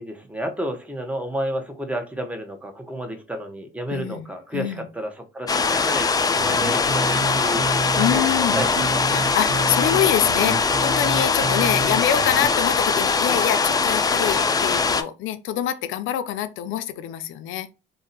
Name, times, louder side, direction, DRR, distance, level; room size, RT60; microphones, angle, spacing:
voice 1, 0.0-7.8 8.1-8.7 11.4-11.7, equal, 5° right, 0.7 m, -31 dB
voice 2, 3.9-4.9 8.0-8.6 9.0-17.7, left 11 dB, 80° left, 0.4 m, -25 dB
sound 1, 5.5-15.0, left 4 dB, 20° left, 0.3 m, -21 dB
sound 2, 6.4-12.5, right 4 dB, 80° right, 0.7 m, -31 dB
2.5 x 2.1 x 3.9 m
cardioid pair, 90°, 20 cm